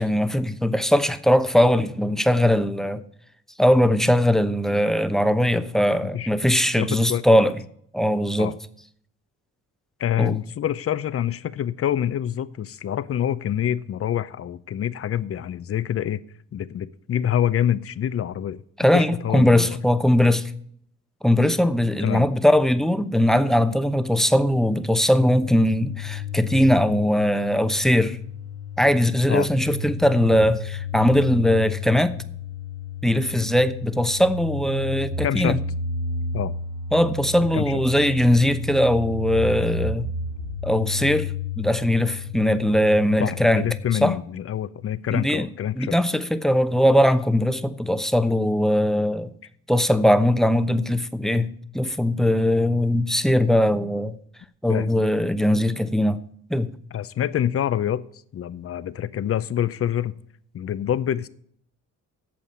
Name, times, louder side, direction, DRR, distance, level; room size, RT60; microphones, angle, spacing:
voice 1, 0.0-3.0 3.6-7.5 7.9-8.5 10.2-10.3 18.8-20.5 21.2-28.2 28.8-32.1 33.0-35.6 36.9-40.1 40.6-43.7 44.0-44.1 45.1-45.5 45.8-49.3 49.7-54.2 54.6-56.2 56.5-56.7, equal, ahead, 0.9 m, -20 dB
voice 2, 6.7-7.4 8.4-8.6 10.0-16.2 16.5-18.6 18.9-19.8 22.0-22.2 29.3-29.5 35.2-35.6 36.3-36.5 37.5-37.8 43.2-45.9 54.7-54.9 56.9-58.0 58.3-60.1 60.5-61.3, left 10 dB, 50° left, 0.7 m, -26 dB
sound 1, 24.6-43.8, left 4 dB, 65° right, 3.4 m, -32 dB
8.6 x 7.3 x 8.3 m
cardioid pair, 90°, 30 cm